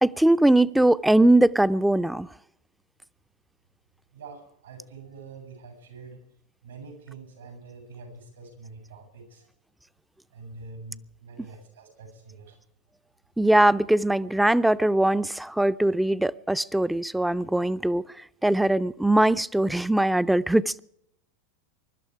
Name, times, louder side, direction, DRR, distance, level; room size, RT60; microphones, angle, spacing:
voice 1, 0.0-2.3 13.4-18.0 18.4-20.8, right 1 dB, 5° right, 0.5 m, -21 dB
voice 2, 4.1-6.2 6.6-9.5 10.3-12.6, right 4 dB, 85° right, 7.7 m, -45 dB
23.5 x 12.0 x 4.8 m
hypercardioid pair, 95°, 0 cm